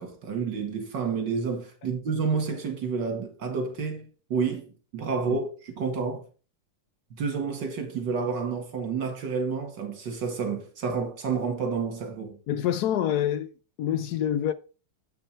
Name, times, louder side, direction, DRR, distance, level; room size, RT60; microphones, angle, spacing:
voice 1, 0.0-4.1 4.3-6.2 7.1-12.4, right 5 dB, 75° right, 2.5 m, -29 dB
voice 2, 12.5-13.5 13.8-14.5, left 10 dB, 70° left, 1.0 m, -26 dB
8.0 x 6.0 x 4.4 m
omnidirectional pair, 2.0 m